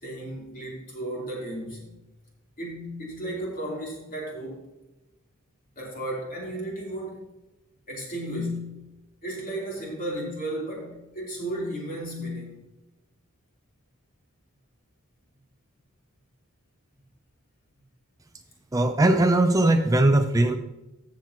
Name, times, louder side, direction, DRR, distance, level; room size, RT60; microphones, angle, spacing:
voice 1, 0.0-1.9 2.6-4.6 5.7-7.2 7.9-8.9 9.2-12.6, right 1 dB, 40° left, -3 dB, 3.1 m, -34 dB
voice 2, 18.7-20.6, right 1 dB, 15° right, 7 dB, 0.4 m, -20 dB
14.5 x 7.5 x 2.8 m, 0.99 s
head